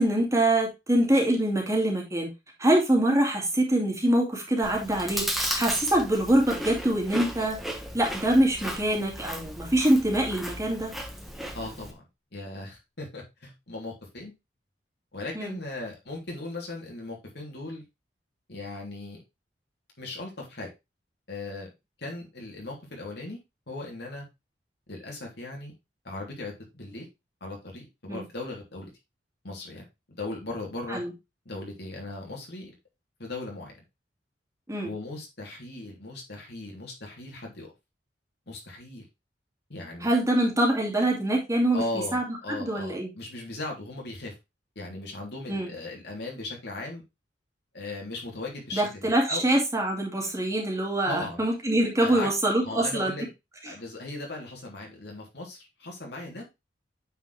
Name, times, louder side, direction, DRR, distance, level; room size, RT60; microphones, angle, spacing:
voice 1, 0.0-2.3 2.6-7.6 7.9-10.9 15.3-15.6 28.1-28.2 30.9-31.1 34.7-34.9 40.0-41.8 42.1-43.1 45.5-45.7 48.7-53.1, right 1 dB, 20° right, 0 dB, 2.3 m, -24 dB
Chewing mastication, 4.6-11.9, equal, ahead, 1.4 m, -35 dB
voice 2, 11.5-12.0 12.3-14.3 15.1-17.8 18.5-19.2 20.0-20.7 21.3-21.7 22.0-23.4 23.7-24.2 24.9-25.7 26.0-27.1 27.4-28.9 29.4-31.0 31.4-32.7 33.2-33.7 34.8-37.7 38.5-39.0 39.7-40.1 41.7-44.3 44.7-47.0 47.7-49.5 51.1-51.4 52.0-52.3 52.6-53.3 53.6-56.4, left 2 dB, 65° left, 0 dB, 3.2 m, -38 dB
9.0 x 4.8 x 3.3 m, 0.23 s
head